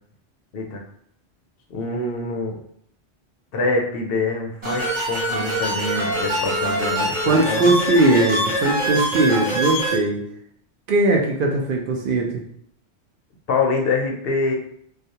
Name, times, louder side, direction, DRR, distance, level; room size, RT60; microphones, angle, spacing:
voice 1, 1.7-2.6 3.5-7.7 13.5-14.5, left 3 dB, 65° left, 1 dB, 0.7 m, -25 dB
sound 1, 4.6-10.0, equal, 45° right, 1.1 m, -24 dB
voice 2, 7.3-10.2 10.9-12.4, right 2 dB, 60° right, 1 dB, 0.6 m, -19 dB
2.4 x 2.2 x 2.7 m, 0.66 s
omnidirectional pair, 1.2 m